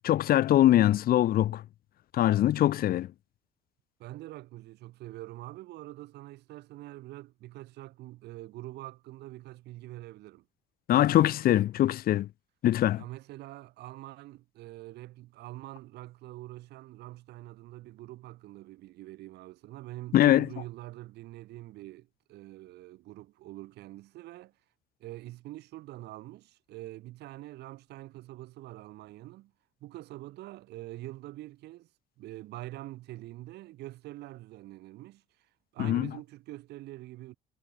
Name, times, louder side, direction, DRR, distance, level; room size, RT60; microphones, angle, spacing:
voice 1, 0.0-1.6 2.1-3.1 10.9-12.3 12.6-13.0 20.1-20.5 35.8-36.1, left 13 dB, 60° left, 1.0 m, -23 dB
voice 2, 4.0-10.4 13.0-24.5 25.0-29.5 29.8-31.9 32.2-35.2 35.7-37.4, right 17 dB, 80° right, 4.4 m, -45 dB
cardioid pair, 110°, 17 cm